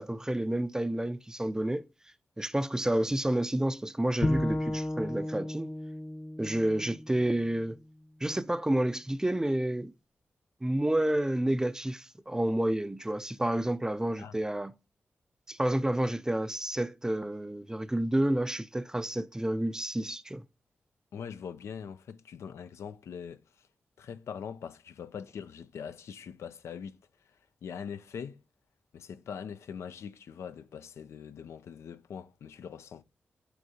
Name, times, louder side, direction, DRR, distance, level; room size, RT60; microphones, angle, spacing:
voice 1, 0.0-1.9 2.4-5.7 6.4-7.8 8.2-9.9 10.6-14.7 15.5-20.4, right 1 dB, 15° right, 0.4 m, -30 dB
Bowed string instrument, 4.2-7.5, left 1 dB, 40° left, 0.8 m, -33 dB
voice 2, 21.1-23.7 24.0-27.0 27.2-28.4 28.9-33.0, left 7 dB, 85° left, 0.4 m, -42 dB
6.2 x 5.7 x 2.7 m
cardioid pair, 60°, 5 cm